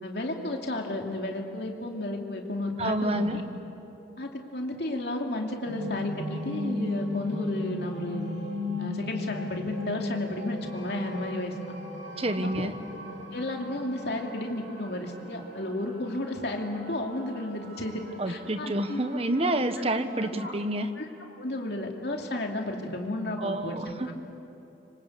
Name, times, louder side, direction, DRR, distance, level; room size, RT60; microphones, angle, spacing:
voice 1, 0.0-3.4 4.2-8.4 8.8-11.5 12.4-12.7 13.3-19.0 20.4-20.5 21.0-21.1 21.4-24.1, left 1 dB, 60° left, 1 dB, 2.7 m, -33 dB
voice 2, 2.8-3.4 12.2-12.7 18.2-20.9 23.4-24.1, right 1 dB, 30° right, 9 dB, 1.1 m, -28 dB
sound 1, 5.6-20.3, left 2 dB, 80° right, 7.3 m, -37 dB
25.5 x 25.5 x 8.3 m, 3.0 s
head